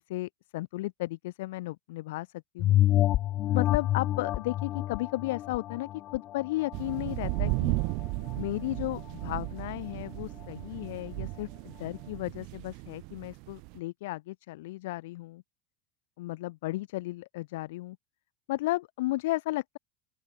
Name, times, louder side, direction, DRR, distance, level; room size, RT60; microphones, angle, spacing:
voice 1, 0.1-2.3 2.5-2.8 3.5-7.8 8.3-15.4 16.2-18.0 18.5-19.8, left 18 dB, 75° left, 7.9 m, -34 dB
sound 1, 2.6-7.5 8.0-8.1, left 14 dB, 35° left, 2.1 m, -28 dB
sound 2, 6.7-13.8, right 30 dB, 50° right, 4.5 m, -35 dB
open air
supercardioid pair, 165°, 0 cm